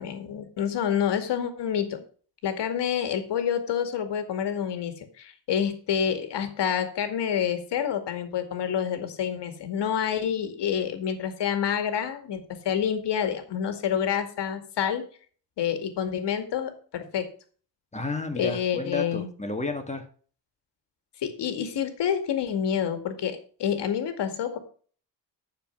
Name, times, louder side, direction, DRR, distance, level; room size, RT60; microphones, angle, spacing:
voice 1, 0.0-2.0 2.4-15.0 15.6-17.3 18.4-19.3 21.2-24.6, left 8 dB, 70° left, 8 dB, 2.2 m, -28 dB
voice 2, 17.9-20.1, left 3 dB, 15° left, 5 dB, 1.7 m, -32 dB
10.5 x 6.9 x 5.9 m, 0.43 s
cardioid pair, 105°, 43 cm